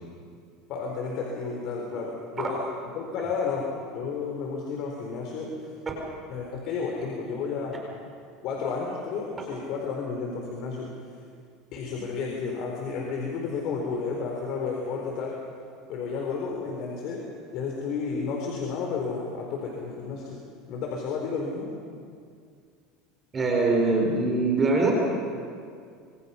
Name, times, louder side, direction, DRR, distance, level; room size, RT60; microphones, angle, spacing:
voice 1, 0.7-2.6 3.0-3.7 3.9-5.7 6.3-7.8 8.4-10.9 11.7-15.4 15.9-17.2 17.5-20.4 20.7-21.7, left 5 dB, 55° left, -1 dB, 3.9 m, -32 dB
voice 2, 23.3-24.9, right 3 dB, 20° right, 0 dB, 4.6 m, -22 dB
26.0 x 25.0 x 5.7 m, 2.2 s
supercardioid pair, 145°, 0 cm